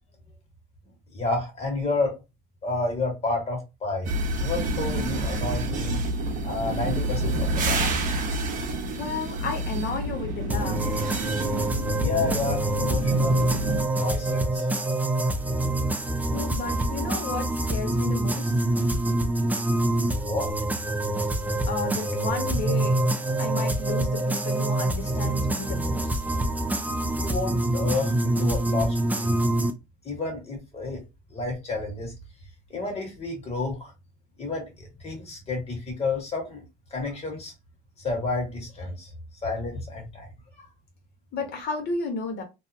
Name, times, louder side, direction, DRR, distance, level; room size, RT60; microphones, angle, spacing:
voice 1, 1.1-2.2 2.6-4.1 4.4-6.0 6.4-8.0 12.0-13.4 14.0-14.7 20.2-20.5 27.1-29.4 30.0-31.0 31.3-32.1 32.7-33.9 34.4-36.6 36.9-37.5 38.0-39.1 39.4-40.3 40.5-40.7, left 3 dB, 35° left, 1.4 m, -30 dB
sound 1, 4.0-13.8, right 1 dB, 50° right, 0.7 m, -28 dB
voice 2, 9.0-10.8 16.3-18.6 21.7-23.0 23.4-26.2 41.3-42.4, left 4 dB, 75° left, 1.1 m, -33 dB
sound 2, 10.5-29.7, right 1 dB, 10° right, 0.4 m, -26 dB
2.7 x 2.1 x 2.6 m
cardioid pair, 110°, 17 cm